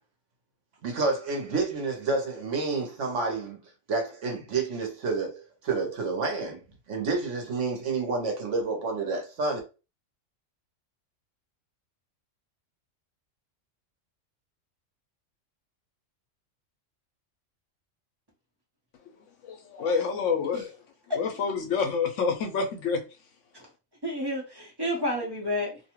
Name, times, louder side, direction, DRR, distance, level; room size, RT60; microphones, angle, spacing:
voice 1, 0.8-3.6 3.9-6.6 6.9-9.6, right 3 dB, 70° right, 1.2 m, -29 dB
voice 2, 19.4-20.7 21.2-23.0, left 5 dB, 75° left, 0.9 m, -28 dB
voice 3, 24.0-25.8, left 1 dB, 20° right, 0.9 m, -30 dB
2.7 x 2.3 x 2.9 m
omnidirectional pair, 1.3 m